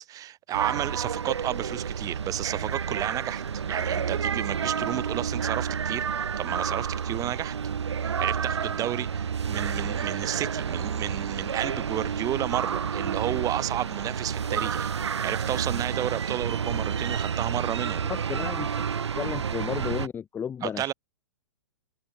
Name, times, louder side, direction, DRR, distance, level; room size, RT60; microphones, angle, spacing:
voice 1, 0.0-3.4 3.7-7.5 8.0-14.9 15.2-18.1 20.6-20.9, right 13 dB, 20° right, 6.3 m, -32 dB
sound 1, 0.5-20.1, right 7 dB, 60° right, 3.3 m, -30 dB
voice 2, 18.1-18.7 19.1-20.9, left 8 dB, 10° left, 1.1 m, -33 dB
figure-of-eight pair, 115°, 16 cm